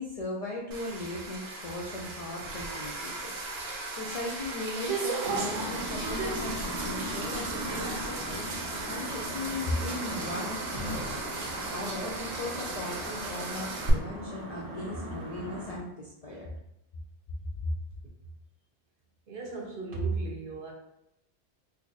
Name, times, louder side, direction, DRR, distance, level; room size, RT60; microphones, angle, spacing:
voice 1, 0.0-11.2 11.7-16.5 17.6-17.7, left 2 dB, 55° left, -2 dB, 0.4 m, -38 dB
sound 1, 0.7-13.9, right 3 dB, 90° right, 1.0 m, -36 dB
sound 2, 5.2-15.8, equal, 20° right, 0.7 m, -39 dB
voice 2, 19.3-20.7, right 3 dB, 60° right, -1 dB, 0.8 m, -34 dB
2.7 x 2.4 x 3.9 m, 0.83 s
omnidirectional pair, 1.1 m